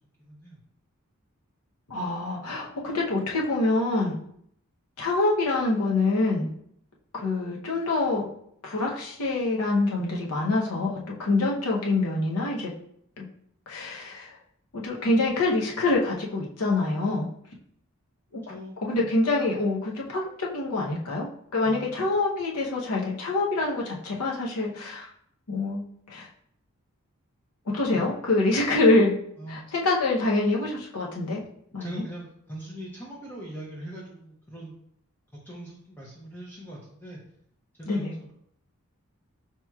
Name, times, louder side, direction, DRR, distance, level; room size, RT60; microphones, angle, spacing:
voice 1, 0.2-0.6 18.5-19.1 21.6-21.9 27.9-28.1 29.4-29.6 31.8-34.8 35.3-37.2 37.8-38.3, right 1 dB, 10° left, -5 dB, 0.6 m, -41 dB
voice 2, 1.9-4.2 5.0-6.5 7.1-8.3 8.6-10.9 11.2-12.7 13.2-13.3 13.7-14.4 14.7-17.3 18.3-18.4 18.8-25.1 25.5-25.8 26.1-26.3 27.7-29.1 29.5-31.4 31.7-32.0 37.9-38.1, left 2 dB, 85° left, -2 dB, 0.7 m, -25 dB
5.7 x 2.9 x 2.3 m, 0.69 s
head